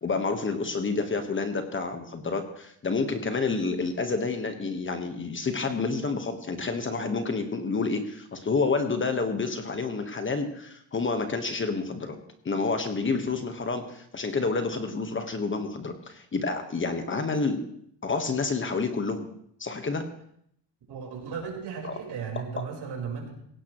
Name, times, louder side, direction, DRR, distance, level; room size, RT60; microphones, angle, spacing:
voice 1, 0.0-12.2 12.4-17.6 18.0-19.3 19.6-20.1, left 4 dB, 25° left, 6 dB, 1.3 m, -29 dB
voice 2, 20.9-23.3, right 6 dB, 60° right, 0 dB, 4.6 m, -35 dB
17.0 x 16.5 x 3.1 m, 0.69 s
cardioid pair, 135°, 44 cm